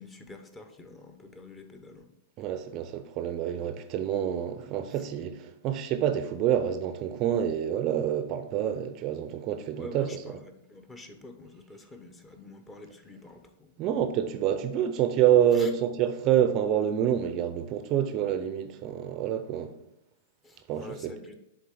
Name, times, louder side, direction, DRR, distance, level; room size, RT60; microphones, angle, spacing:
voice 1, 0.0-2.1 4.9-5.0 9.8-13.7 15.5-15.7 20.4-21.3, left 2 dB, 15° left, 0.8 m, -46 dB
voice 2, 2.4-10.1 13.8-19.7 20.7-21.1, right 10 dB, 35° right, 0.5 m, -27 dB
6.9 x 3.7 x 4.7 m
hypercardioid pair, 140°, 0 cm